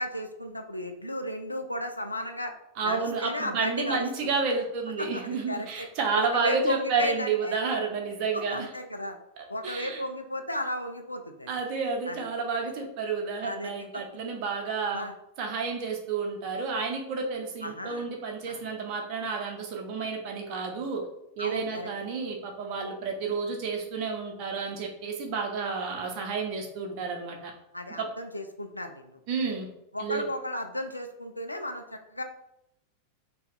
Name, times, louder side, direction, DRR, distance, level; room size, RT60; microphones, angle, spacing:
voice 1, 0.0-2.5 2.8-4.3 5.0-5.9 6.1-7.6 8.5-9.2 9.5-11.5 12.1-12.3 13.4-14.0 14.9-15.1 17.6-18.1 18.5-18.6 21.4-21.9 27.7-29.2 29.9-32.2, left 1 dB, 85° left, 6 dB, 0.3 m, -34 dB
voice 2, 2.8-8.7 9.6-10.0 11.5-15.0 15.4-21.0 21.4-27.5 28.0-28.1 29.3-29.7 30.0-30.2, right 4 dB, 40° right, 1 dB, 0.7 m, -30 dB
2.7 x 2.3 x 3.5 m, 0.83 s
figure-of-eight pair, 90°, 0 cm